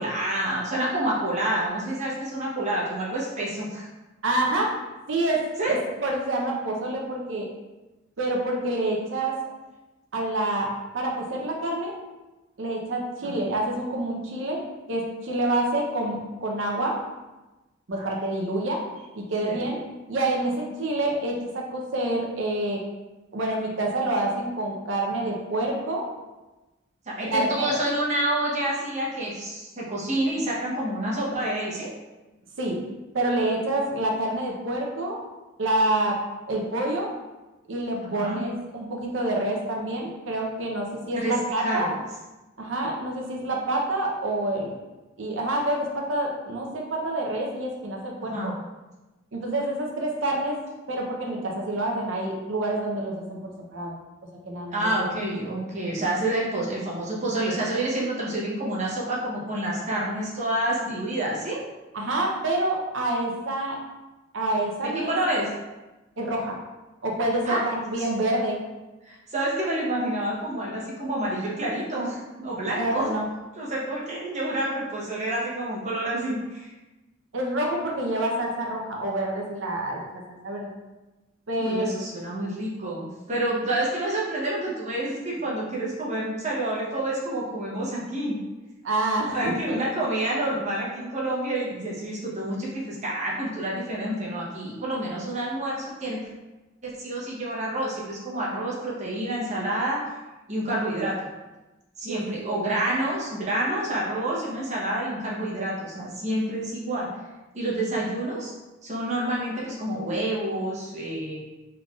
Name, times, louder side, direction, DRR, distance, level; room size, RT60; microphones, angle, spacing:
voice 1, 0.0-3.9 5.6-5.8 13.2-13.3 18.0-18.1 19.4-19.6 27.1-31.9 38.0-38.4 41.1-41.3 41.6-41.9 48.3-48.5 54.7-61.6 65.1-65.5 67.5-67.6 68.0-68.1 69.0-73.1 73.6-76.7 81.6-88.4 89.3-96.2 96.8-100.0 100.5-101.2 102.0-107.1 107.5-108.5 108.8-111.4, right 1 dB, 35° right, -5 dB, 0.9 m, -28 dB
voice 2, 4.2-4.7 5.1-7.5 8.2-9.4 10.1-11.9 12.6-14.6 14.9-17.0 17.9-18.8 19.1-19.8 20.1-22.8 23.3-26.0 27.3-27.7 32.6-32.8 33.1-35.2 35.6-36.2 36.5-37.1 37.7-41.9 42.6-44.8 45.2-48.5 49.3-50.6 50.9-54.0 54.5-54.9 61.9-63.8 64.3-65.2 66.2-66.6 67.0-68.6 72.7-73.3 77.3-80.7 81.5-81.9 88.8-89.8 102.1-102.5, right 1 dB, 70° right, 0 dB, 0.7 m, -27 dB
3.8 x 3.4 x 2.4 m, 1.1 s
head